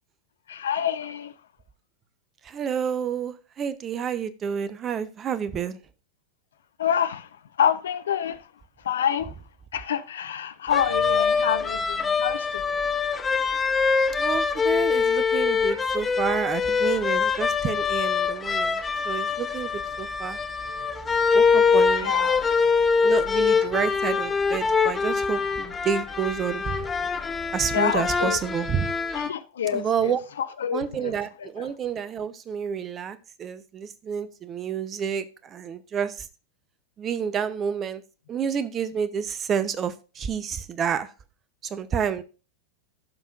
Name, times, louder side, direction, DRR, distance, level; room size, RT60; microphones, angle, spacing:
voice 1, 0.5-1.3 6.8-7.3 7.6-8.5 8.8-9.3 9.7-12.8 22.0-22.5 27.7-28.4 29.1-31.7, left 9 dB, 65° left, 0.7 m, -27 dB
voice 2, 2.4-5.8 14.2-20.4 21.3-22.1 23.0-26.9 27.5-28.9 29.7-30.2 30.7-36.3 37.0-38.0 38.3-41.1 41.7-42.2, right 7 dB, 25° right, 0.7 m, -29 dB
sound 1, 10.7-29.3, left 5 dB, 15° left, 0.7 m, -24 dB
Wind instrument woodwind instrument, 20.6-29.2, equal, 80° right, 2.0 m, -49 dB
14.5 x 5.6 x 2.5 m
figure-of-eight pair, 90°, 0 cm